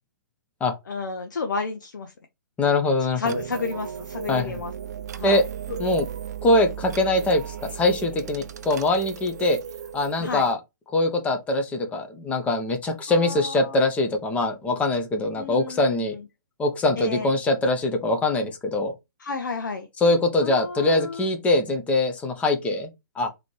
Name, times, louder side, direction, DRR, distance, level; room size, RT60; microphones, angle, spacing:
voice 1, 0.9-2.1 3.2-4.7 5.2-5.4 10.2-10.5 13.1-13.8 15.4-16.2 17.0-17.3 19.2-19.9 20.4-21.3, left 4 dB, 65° left, 0.8 m, -31 dB
voice 2, 2.6-3.2 4.3-4.6 5.2-5.4 5.8-6.0 6.4-9.6 9.9-10.6 10.9-16.2 16.6-18.9 20.0-22.9 23.2-23.3, left 2 dB, 10° left, 0.8 m, -23 dB
sound 1, 3.3-10.5, right 8 dB, 55° right, 0.6 m, -36 dB
4.1 x 2.9 x 3.2 m
figure-of-eight pair, 130°, 11 cm